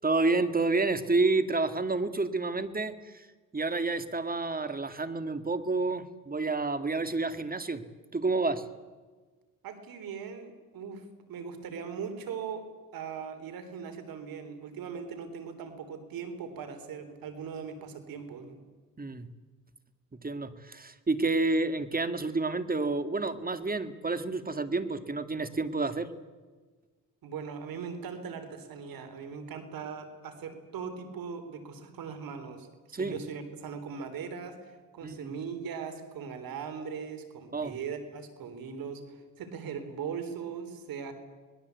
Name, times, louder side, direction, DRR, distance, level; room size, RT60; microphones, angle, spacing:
voice 1, 0.0-3.3 3.5-7.8 8.1-8.6 19.0-19.3 20.2-26.1 32.9-33.1 35.0-35.3 37.5-37.8, right 3 dB, 25° right, 10 dB, 2.1 m, -29 dB
voice 2, 9.6-12.7 12.9-18.6 27.2-41.1, right 6 dB, 85° right, 8 dB, 3.7 m, -40 dB
25.5 x 20.5 x 8.3 m, 1.4 s
cardioid pair, 85°, 34 cm